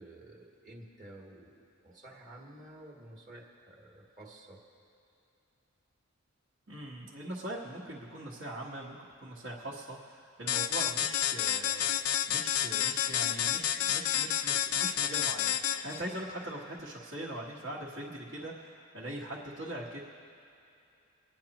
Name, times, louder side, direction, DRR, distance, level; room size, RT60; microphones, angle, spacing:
voice 1, 0.0-4.6, right 1 dB, 35° right, -2 dB, 1.4 m, -51 dB
voice 2, 6.7-9.0 9.2-11.9 12.3-20.0, right 1 dB, 60° right, -6 dB, 1.3 m, -41 dB
sound 1, 10.5-16.0, left 10 dB, 85° left, 0.5 m, -30 dB
27.5 x 10.0 x 2.9 m, 2.7 s
head